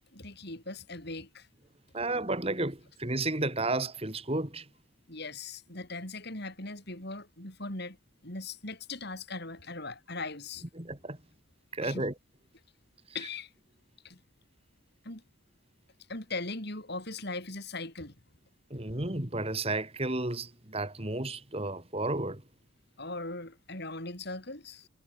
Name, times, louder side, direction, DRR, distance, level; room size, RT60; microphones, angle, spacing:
voice 1, 0.1-1.5 5.1-8.0 8.2-10.6 11.8-12.1 13.1-13.5 14.0-14.2 15.0-15.2 16.1-18.2 23.0-24.9, left 3 dB, 50° left, 5.5 m, -39 dB
voice 2, 1.9-4.7 10.8-11.2 11.7-12.1 18.7-22.4, right 2 dB, 30° right, 2.6 m, -32 dB
head